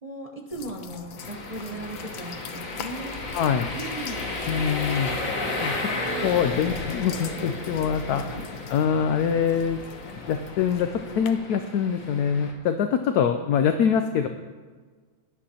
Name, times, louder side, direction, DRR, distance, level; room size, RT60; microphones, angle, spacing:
voice 1, 0.0-3.2 3.7-4.3 8.2-8.4 11.1-11.3, right 2 dB, 35° right, 0 dB, 0.6 m, -37 dB
sound 1, 0.5-11.3, left 7 dB, 90° left, 1.5 m, -42 dB
sound 2, 1.2-12.5, left 2 dB, 45° left, 1.7 m, -34 dB
voice 2, 3.3-3.7 4.5-5.1 5.6-5.8 6.2-8.2 8.7-9.8 10.3-14.3, left 7 dB, 70° left, 7 dB, 0.9 m, -24 dB
17.5 x 11.0 x 2.9 m, 1.5 s
omnidirectional pair, 2.0 m